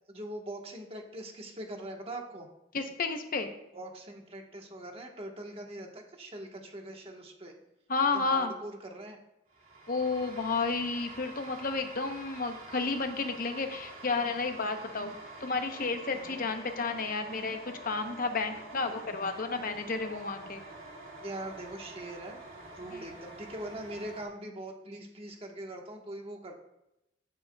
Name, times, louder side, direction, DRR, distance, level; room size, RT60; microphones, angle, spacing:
voice 1, 0.1-2.5 3.7-7.5 8.1-9.2 16.1-16.4 21.2-22.4 22.8-26.5, right 1 dB, 30° right, 1 dB, 1.3 m, -42 dB
voice 2, 2.7-3.5 7.9-8.5 9.9-15.1 15.4-20.6 22.9-23.0, left 4 dB, 50° left, 6 dB, 0.8 m, -31 dB
sound 1, 9.5-24.3, right 2 dB, 50° right, 2.4 m, -47 dB
16.0 x 7.0 x 2.3 m, 0.88 s
head